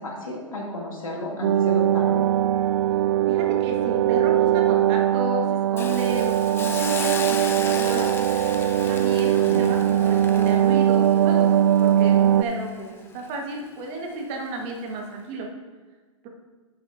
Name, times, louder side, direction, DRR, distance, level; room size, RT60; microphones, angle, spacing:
voice 1, 0.0-2.2 9.4-9.7, equal, 90° left, -2 dB, 2.6 m, -32 dB
sound 1, 1.4-12.4, right 11 dB, 60° right, 0.4 m, -21 dB
voice 2, 3.3-5.4 5.7-8.1 8.9-11.5 11.8-15.5, right 2 dB, 35° right, 1 dB, 1.6 m, -32 dB
Hiss, 5.8-12.8 13.2-13.4, left 6 dB, 15° left, 0.5 m, -36 dB
11.0 x 7.4 x 2.7 m, 1.3 s
hypercardioid pair, 120°, 17 cm